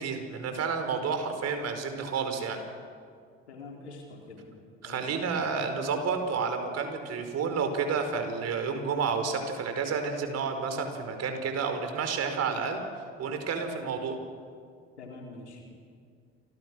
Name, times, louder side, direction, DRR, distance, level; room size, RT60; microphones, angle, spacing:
voice 1, 0.0-2.6 4.8-12.8 13.2-14.2, right 5 dB, 50° right, 6 dB, 5.1 m, -30 dB
voice 2, 3.5-4.5 4.8-5.4 15.0-15.6, left 3 dB, 90° left, 0 dB, 4.5 m, -45 dB
29.5 x 25.5 x 6.4 m, 2.1 s
hypercardioid pair, 60°, 33 cm